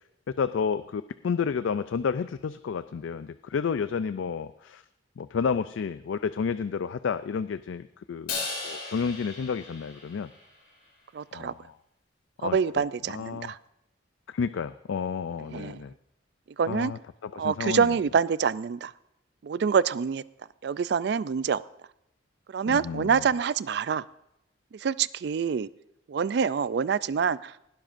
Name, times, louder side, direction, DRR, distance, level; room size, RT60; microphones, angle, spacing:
voice 1, 0.4-4.8 5.2-8.4 8.6-10.3 11.3-11.7 12.4-13.5 14.3-15.9 16.7-17.9 22.7-23.3, left 6 dB, 75° left, 13 dB, 0.4 m, -31 dB
Crash cymbal, 8.3-10.7, left 4 dB, 55° left, 5.0 m, -36 dB
voice 2, 11.1-11.5 12.4-13.6 15.5-15.8 16.6-16.9 17.4-18.9 19.4-20.2 20.6-21.6 22.5-24.0 24.8-25.7 26.1-27.7, right 6 dB, 55° right, 18 dB, 0.3 m, -26 dB
19.5 x 12.5 x 2.6 m, 0.84 s
head